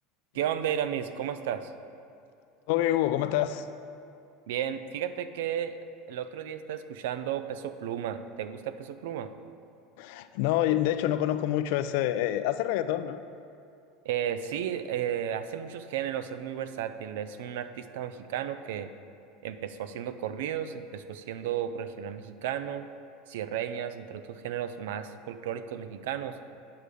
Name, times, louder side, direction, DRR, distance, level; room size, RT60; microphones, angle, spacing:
voice 1, 0.3-1.7 4.5-5.8 6.1-9.3 14.0-18.9 19.4-22.8 23.3-26.4, right 9 dB, 80° right, 11 dB, 0.5 m, -33 dB
voice 2, 2.7-3.7 10.0-13.2, left 13 dB, 65° left, 11 dB, 0.4 m, -27 dB
9.4 x 4.9 x 6.8 m, 2.6 s
supercardioid pair, 145°, 0 cm